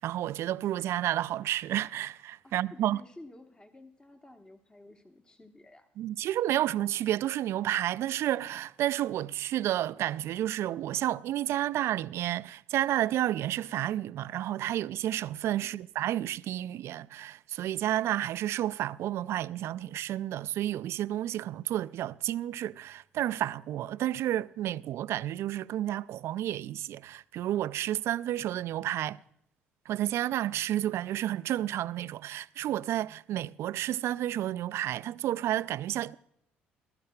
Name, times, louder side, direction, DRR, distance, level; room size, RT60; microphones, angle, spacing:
voice 1, 0.0-3.0 6.0-29.2 29.9-36.2, right 13 dB, 55° right, 0.4 m, -31 dB
voice 2, 2.4-5.9 15.6-15.8, left 1 dB, 15° left, 1.1 m, -52 dB
21.5 x 12.5 x 2.3 m
figure-of-eight pair, 50°, 5 cm